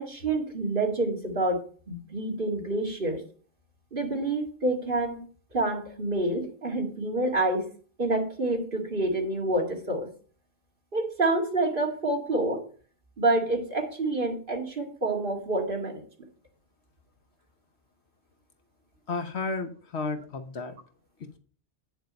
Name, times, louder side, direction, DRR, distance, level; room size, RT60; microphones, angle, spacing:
voice 1, 0.0-3.2 3.9-5.2 5.5-7.7 8.0-10.1 10.9-12.6 13.2-16.0, right 2 dB, 50° right, 1 dB, 2.2 m, -28 dB
voice 2, 19.1-20.8, left 3 dB, 70° left, 7 dB, 1.3 m, -32 dB
9.2 x 6.8 x 5.2 m, 0.40 s
omnidirectional pair, 1.2 m